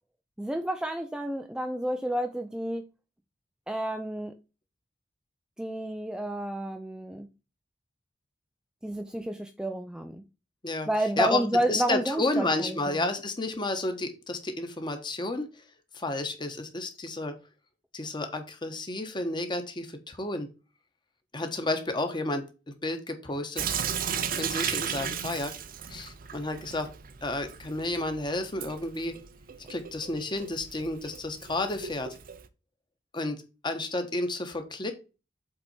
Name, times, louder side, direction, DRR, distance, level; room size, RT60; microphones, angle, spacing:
voice 1, 0.4-2.8 3.7-4.3 5.6-7.3 8.8-10.2 10.9-13.0, right 1 dB, 5° right, 0.4 m, -30 dB
voice 2, 11.7-15.5 15.9-17.3 17.9-20.5 21.3-22.4 22.8-23.6 24.1-25.5 25.9-26.9 27.2-29.1 29.7-32.2 33.1-34.9, left 2 dB, 25° left, 1.2 m, -31 dB
Sink (filling or washing) / Drip, 23.6-32.5, right 8 dB, 50° right, 0.7 m, -36 dB
7.8 x 4.2 x 4.3 m
head